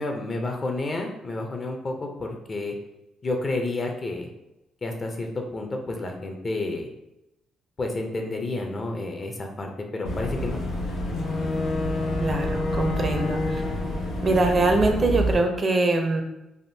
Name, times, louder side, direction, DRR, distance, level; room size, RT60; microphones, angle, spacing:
voice 1, 0.0-2.7 3.2-4.3 4.8-6.9 7.8-10.6, left 2 dB, 35° left, 2 dB, 0.5 m, -30 dB
Boat Water vehicle / Engine, 10.0-15.3, left 1 dB, 85° left, 0.8 m, -27 dB
voice 2, 12.2-13.6 14.2-16.2, right 2 dB, 35° right, 4 dB, 0.5 m, -23 dB
3.5 x 2.4 x 2.7 m, 0.92 s
cardioid pair, 90°, 0 cm